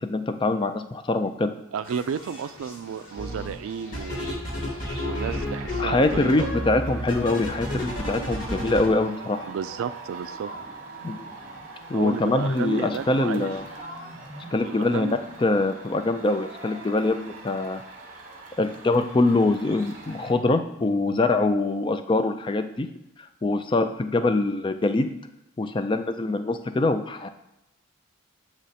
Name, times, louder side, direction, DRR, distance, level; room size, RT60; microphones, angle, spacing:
voice 1, 0.0-1.5 5.8-9.5 11.0-11.3 11.9-13.6 14.5-15.1 15.4-17.8 18.6-22.9 23.4-25.1 25.6-27.3, left 2 dB, 25° left, 9 dB, 0.3 m, -24 dB
voice 2, 1.7-4.4 5.0-6.5 6.9-7.1 9.5-10.5 11.9-13.5 14.6-15.2, right 7 dB, 85° right, 14 dB, 0.3 m, -32 dB
sound 1, 1.8-15.4, equal, 70° left, 1.9 m, -46 dB
sound 2, 3.2-3.5 3.9-8.9, left 1 dB, 40° left, 1.5 m, -31 dB
sound 3, 5.1-20.3, right 3 dB, 40° right, 1.1 m, -43 dB
7.6 x 3.0 x 4.2 m, 0.88 s
head